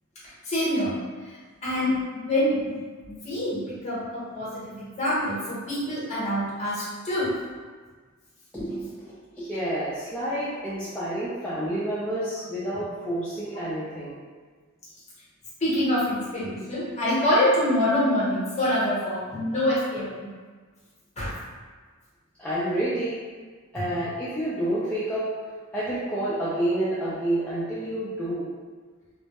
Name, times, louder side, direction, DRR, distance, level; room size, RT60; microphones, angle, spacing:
voice 1, 0.4-1.0 1.2-2.8 3.1-7.3 15.6-20.3 21.2-21.3 23.7-23.9, left 1 dB, 30° left, -8 dB, 0.8 m, -26 dB
voice 2, 8.5-14.2 22.4-23.2 23.7-25.3 25.7-28.5, right 1 dB, 5° left, -11 dB, 0.3 m, -29 dB
2.2 x 2.0 x 2.8 m, 1.5 s
head